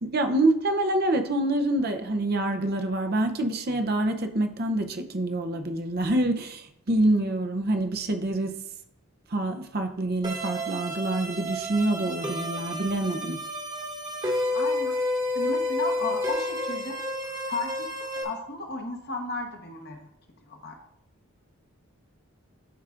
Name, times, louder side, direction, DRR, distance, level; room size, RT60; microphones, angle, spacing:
voice 1, 0.0-8.6 9.3-13.4, right 1 dB, 45° right, 0.6 m, -26 dB
sound 1, 10.2-18.2, left 1 dB, 20° right, 1.1 m, -30 dB
voice 2, 14.5-15.0 15.3-17.0 17.5-20.1 20.5-20.8, left 3 dB, 45° left, 1.0 m, -34 dB
12.0 x 4.7 x 2.5 m
head